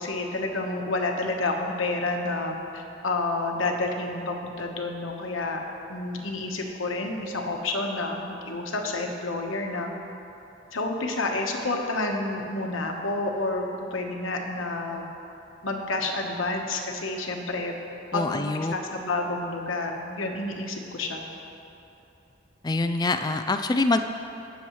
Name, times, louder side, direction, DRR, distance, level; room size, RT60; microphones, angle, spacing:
voice 1, 0.0-5.6 5.9-9.9 10.7-13.6 13.9-15.1 15.6-17.7 18.1-21.3, left 2 dB, 85° left, 1 dB, 1.2 m, -29 dB
voice 2, 18.1-18.7 22.6-24.0, left 2 dB, 20° left, 7 dB, 0.3 m, -25 dB
20.5 x 7.0 x 3.2 m, 2.8 s
head